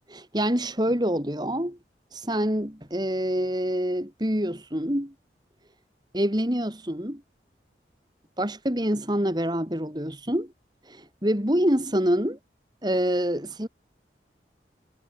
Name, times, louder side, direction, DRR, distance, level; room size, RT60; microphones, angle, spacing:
voice 1, 0.1-1.8 2.1-5.1 6.1-7.2 8.4-10.5 10.9-12.4 12.8-13.7, equal, 25° right, 3.6 m, -26 dB
head